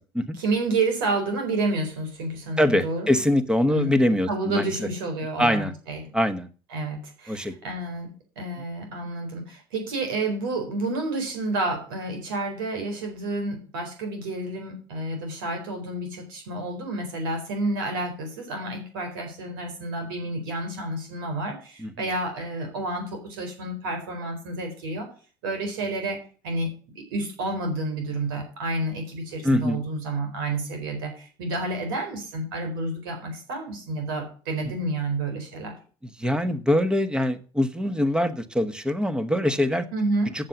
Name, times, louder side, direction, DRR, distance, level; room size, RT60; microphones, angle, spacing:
voice 1, 0.4-3.1 3.7-4.0 4.3-6.0 6.7-8.1 8.4-25.1 25.4-26.2 26.4-26.7 26.9-35.7 39.9-40.3, right 2 dB, 90° right, 4 dB, 4.3 m, -30 dB
voice 2, 2.6-4.7 5.4-5.7 6.1-6.5 7.3-7.5 21.8-22.1 29.4-29.8 36.2-39.9 40.3-40.5, left 1 dB, 5° right, 11 dB, 1.3 m, -23 dB
7.6 x 7.4 x 8.2 m, 0.39 s
supercardioid pair, 80°, 11 cm